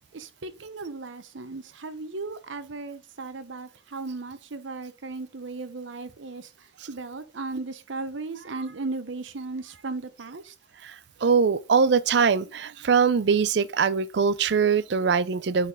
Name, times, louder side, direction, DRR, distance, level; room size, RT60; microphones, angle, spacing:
voice 1, 0.1-6.5 6.9-10.5, right 3 dB, 80° right, 0.8 m, -36 dB
voice 2, 10.8-15.7, right 5 dB, 60° right, 0.4 m, -22 dB
6.5 x 4.1 x 3.6 m
head